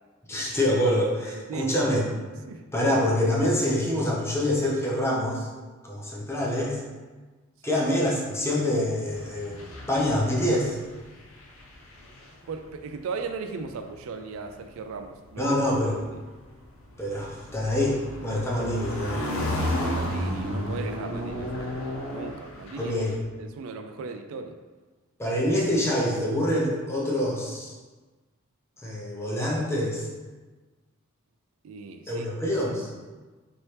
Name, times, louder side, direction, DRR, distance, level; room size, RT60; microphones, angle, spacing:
voice 1, 0.3-2.0 2.7-5.5 5.8-6.8 7.6-9.6 9.9-10.8 15.4-16.0 17.0-19.2 22.8-23.1 25.2-27.7 28.8-30.1 32.1-32.9, left 1 dB, 10° left, -4 dB, 0.7 m, -25 dB
voice 2, 1.4-1.7 2.5-2.6 7.7-7.8 12.5-15.5 16.1-16.2 19.7-21.8 22.1-24.6 31.6-32.3, right 4 dB, 75° right, 6 dB, 0.3 m, -37 dB
sound 1, 9.1-11.1 11.3-12.6 13.6-13.9 16.0-23.1, left 1 dB, 75° left, 0.6 m, -32 dB
4.2 x 3.0 x 3.3 m, 1.3 s
head